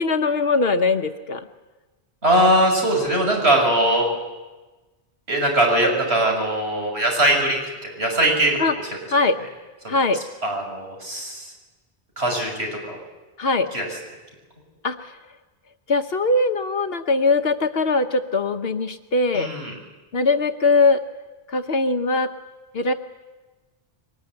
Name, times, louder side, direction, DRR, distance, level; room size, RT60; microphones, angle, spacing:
voice 1, 0.0-1.4 8.6-8.7 9.1-9.4 9.9-10.2 13.4-13.7 14.8-15.2 15.9-19.5 20.1-21.0 21.5-22.3 22.7-22.9, left 3 dB, 65° left, 7 dB, 1.2 m, -21 dB
voice 2, 2.2-4.1 5.3-7.6 8.0-8.6 9.8-10.0 10.4-11.5 12.2-13.0 13.7-13.8 19.3-19.7, right 1 dB, 80° right, 1 dB, 7.2 m, -20 dB
23.5 x 20.5 x 9.7 m, 1.2 s
omnidirectional pair, 1.1 m